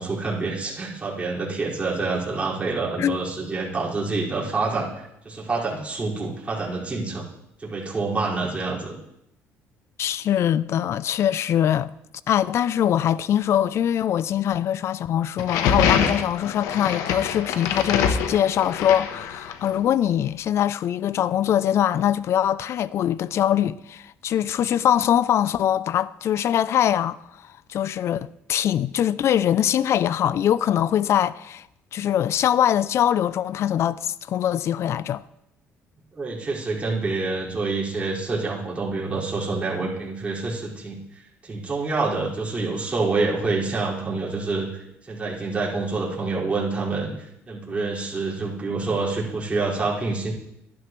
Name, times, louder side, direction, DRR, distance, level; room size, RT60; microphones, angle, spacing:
voice 1, 0.0-7.3 7.6-9.0 36.1-44.7 45.0-50.3, right 3 dB, 25° right, 5.1 m, -27 dB
voice 2, 10.0-11.9 12.3-27.2 27.7-31.7 31.9-35.2, left 10 dB, 60° left, 0.4 m, -22 dB
sound 1, 15.4-19.7, left 7 dB, 85° left, 1.1 m, -25 dB
13.0 x 11.5 x 3.2 m
cardioid pair, 90°, 5 cm